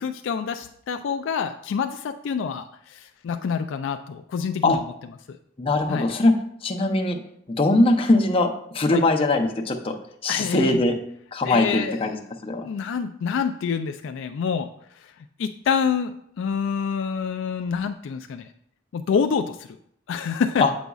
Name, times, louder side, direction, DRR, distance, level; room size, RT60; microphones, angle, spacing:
voice 1, 0.0-4.8 5.3-5.4 5.9-6.1 8.9-9.0 10.3-10.8 11.4-12.0 12.6-14.7 15.0-15.1 15.4-16.1 16.4-18.5 18.9-19.8 20.1-20.7, left 6 dB, 70° left, 7 dB, 0.3 m, -27 dB
voice 2, 5.6-6.3 6.6-7.2 7.6-10.0 10.2-11.0 11.3-12.2 12.4-12.7 20.6-20.7, left 2 dB, 30° left, 2 dB, 0.6 m, -21 dB
8.1 x 5.1 x 2.3 m, 0.68 s
head